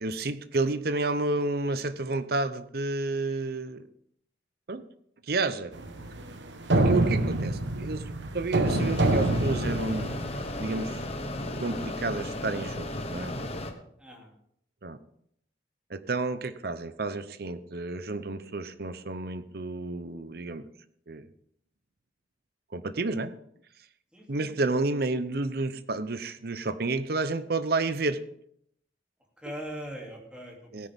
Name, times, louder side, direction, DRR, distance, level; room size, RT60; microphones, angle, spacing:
voice 1, 0.0-3.8 4.7-4.8 5.3-5.7 6.8-10.1 10.6-11.1 11.6-13.3 14.8-15.0 15.9-20.7 21.1-21.3 22.7-23.3 24.3-28.2 30.7-30.9, right 3 dB, 55° right, 12 dB, 0.8 m, -30 dB
sound 1, 5.7-10.6, right 2 dB, 80° right, 1.2 m, -27 dB
voice 2, 7.0-7.3 14.0-14.3 24.1-24.6 29.4-30.9, equal, 5° right, -1 dB, 2.7 m, -42 dB
Mechanisms, 8.6-13.7, left 1 dB, 35° left, 1.2 m, -34 dB
16.5 x 9.8 x 3.6 m, 0.69 s
head